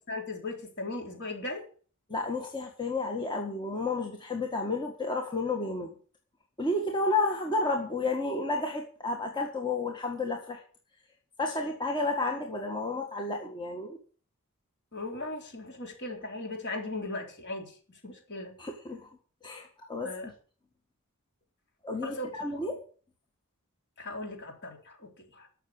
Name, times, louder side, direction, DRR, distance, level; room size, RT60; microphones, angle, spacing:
voice 1, 0.1-1.6 14.9-18.5 20.0-20.3 22.0-22.6 24.0-25.5, left 2 dB, 50° left, 2 dB, 4.0 m, -38 dB
voice 2, 2.1-5.9 6.6-10.6 11.4-14.0 18.6-19.1 19.4-20.3 21.8-22.8, left 2 dB, 20° left, 1 dB, 1.7 m, -31 dB
13.0 x 6.7 x 8.8 m, 0.42 s
head